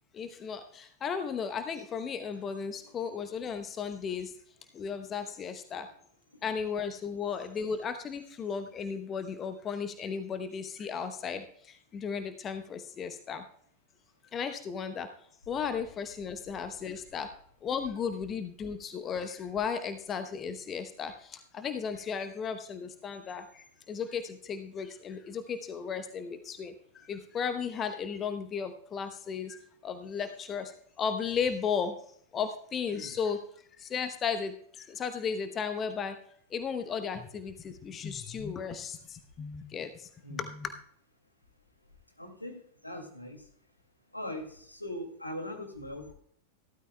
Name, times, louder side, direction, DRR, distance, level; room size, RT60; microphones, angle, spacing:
voice 1, 0.1-4.3 4.7-5.9 6.4-13.4 14.3-15.1 15.5-17.3 17.6-31.9 32.3-33.4 33.8-36.2 36.5-40.7, left 6 dB, 25° left, 9 dB, 0.9 m, -35 dB
voice 2, 42.2-42.5 42.8-43.4 44.1-46.1, left 1 dB, 85° left, 2 dB, 2.2 m, -40 dB
15.5 x 13.0 x 2.3 m, 0.63 s
figure-of-eight pair, 90°, 0 cm